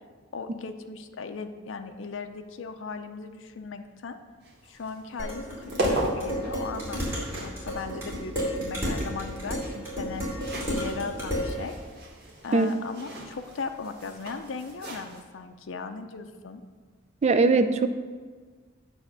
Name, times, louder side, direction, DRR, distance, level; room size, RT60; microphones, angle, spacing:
voice 1, 0.3-4.2 4.6-10.2 10.7-11.7 12.4-16.6, left 4 dB, 70° left, 7 dB, 0.5 m, -37 dB
sound 1, 4.4-15.2, right 1 dB, 55° right, 1.5 m, -37 dB
Dishes pots and pans, 5.2-11.5, equal, 15° right, 2.6 m, -32 dB
voice 2, 17.2-17.9, right 3 dB, 35° right, 10 dB, 0.4 m, -20 dB
8.7 x 3.5 x 6.7 m, 1.5 s
head